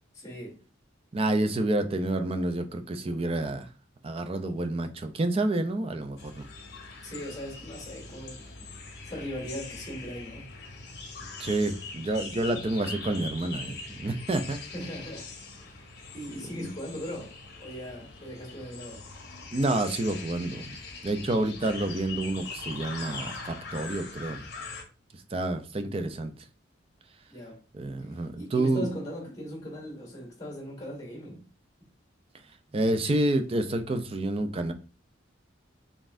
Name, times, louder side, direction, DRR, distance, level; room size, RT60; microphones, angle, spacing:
voice 1, 0.1-0.6 7.0-8.4 9.0-10.4 14.7-15.8 16.1-17.3 17.6-19.0 27.3-27.6 28.1-31.4, equal, 20° left, 1.6 m, -39 dB
voice 2, 1.1-3.7 4.0-6.5 11.4-14.6 16.6-16.7 19.5-20.8 21.0-24.4 25.3-26.4 27.7-28.9 32.7-34.7, right 2 dB, 30° right, 0.4 m, -29 dB
sound 1, 6.2-24.8, left 4 dB, 55° left, 0.8 m, -42 dB
4.0 x 3.5 x 2.6 m
head